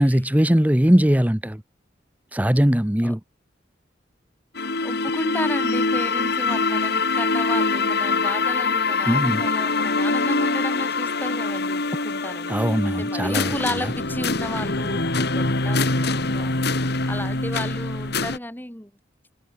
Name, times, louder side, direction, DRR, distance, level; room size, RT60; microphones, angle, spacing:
voice 1, 0.0-1.6 2.3-3.2 9.1-9.4 12.5-13.5, equal, 10° right, 0.9 m, -20 dB
sound 1, 4.5-18.4, left 3 dB, 60° left, 3.4 m, -24 dB
voice 2, 4.8-18.9, left 1 dB, 10° left, 4.1 m, -33 dB
head